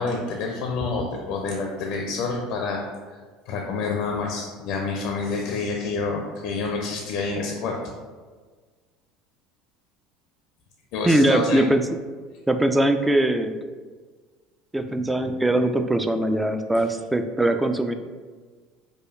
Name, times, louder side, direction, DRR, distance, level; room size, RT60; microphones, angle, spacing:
voice 1, 0.0-2.8 3.5-7.8 10.9-11.6, left 4 dB, 60° left, 1 dB, 0.4 m, -28 dB
voice 2, 11.0-11.8 12.5-13.6 14.7-17.9, right 1 dB, 10° right, 7 dB, 0.3 m, -21 dB
4.9 x 2.2 x 2.5 m, 1.5 s
hypercardioid pair, 80°, 0 cm